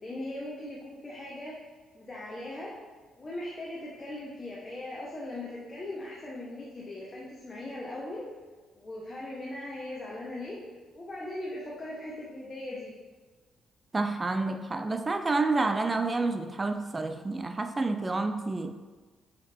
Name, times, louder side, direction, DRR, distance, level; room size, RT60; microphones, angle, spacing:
voice 1, 0.0-1.7 1.9-2.7 3.2-8.3 8.7-10.6 10.9-12.9, left 1 dB, 30° left, 1.1 m, -39 dB
voice 2, 13.9-18.7, right 3 dB, 25° right, 0.4 m, -29 dB
5.1 x 4.8 x 4.4 m
cardioid pair, 90°, 0 cm